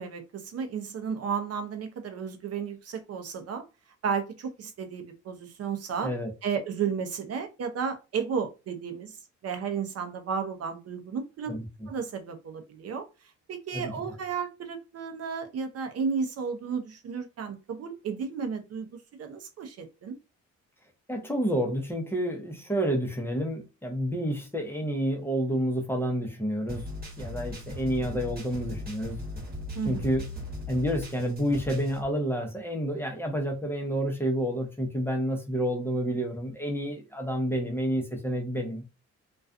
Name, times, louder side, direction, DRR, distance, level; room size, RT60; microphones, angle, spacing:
voice 1, 0.0-3.6 4.0-6.1 6.4-9.1 9.4-11.5 11.9-13.1 13.5-18.9 19.2-20.1 29.7-30.1, right 6 dB, 55° right, 0.6 m, -33 dB
voice 2, 11.5-11.9 13.7-13.9 21.1-26.9 27.2-29.2 29.8-30.3 30.7-38.8, equal, 10° left, 0.6 m, -29 dB
sound 1, 26.7-32.0, left 2 dB, 30° right, 1.2 m, -38 dB
2.4 x 2.3 x 2.4 m
cardioid pair, 90°, 30 cm